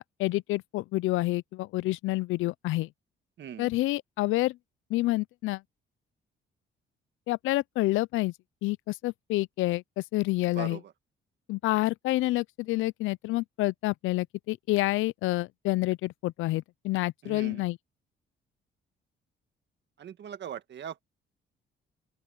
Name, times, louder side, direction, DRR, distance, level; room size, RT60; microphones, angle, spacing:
voice 1, 0.0-2.9 3.6-4.6 4.9-5.6 7.3-8.3 8.6-10.8 11.5-17.8, left 18 dB, 85° left, 0.4 m, -28 dB
voice 2, 3.4-3.7 10.5-10.9 17.2-17.6 20.0-21.0, right 9 dB, 60° right, 1.8 m, -40 dB
open air
cardioid pair, 90°, 20 cm